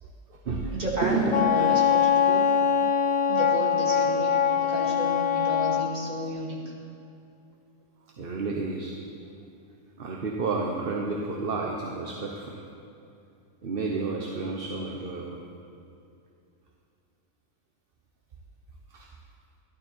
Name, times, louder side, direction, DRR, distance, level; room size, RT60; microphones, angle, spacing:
voice 1, 0.0-1.3 3.1-3.2 8.2-8.9 10.0-12.6 13.6-15.4 18.9-19.1, right 3 dB, 45° right, -1 dB, 1.0 m, -31 dB
voice 2, 0.7-2.5 3.3-6.7, right 1 dB, 30° right, -3 dB, 2.1 m, -32 dB
Wind instrument woodwind instrument, 1.3-5.9, left 7 dB, 80° left, 1.1 m, -23 dB
13.5 x 12.0 x 4.5 m, 2.6 s
omnidirectional pair, 1.4 m